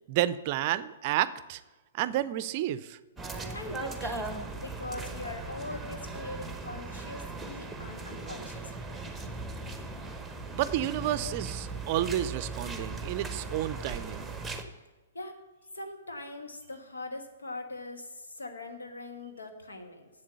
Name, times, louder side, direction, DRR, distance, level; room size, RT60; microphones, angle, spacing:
voice 1, 0.1-1.6 1.9-3.0 10.5-14.3, right 13 dB, 45° right, 16 dB, 0.5 m, -30 dB
sound 1, 3.2-14.6, right 3 dB, 5° right, 1.0 m, -38 dB
voice 2, 3.5-8.9 15.1-15.4 15.7-20.1, left 2 dB, 80° left, 5 dB, 1.4 m, -41 dB
7.8 x 7.3 x 6.9 m, 1.2 s
figure-of-eight pair, 115°, 0 cm